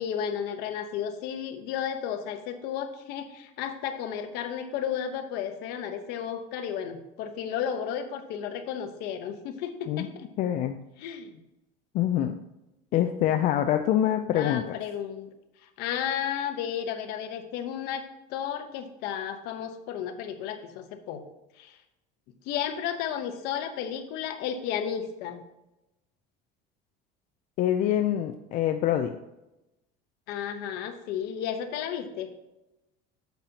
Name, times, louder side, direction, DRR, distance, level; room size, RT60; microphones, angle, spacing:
voice 1, 0.0-10.3 11.0-11.4 14.3-15.3 15.8-18.0 18.3-21.2 21.6-21.8 22.5-25.4 30.3-32.3, left 8 dB, 60° left, 7 dB, 1.0 m, -33 dB
voice 2, 10.4-10.8 11.9-12.4 12.9-14.6 27.6-29.1, left 11 dB, 45° left, 6 dB, 0.4 m, -25 dB
9.1 x 7.1 x 2.8 m, 0.94 s
cardioid pair, 175°, 19 cm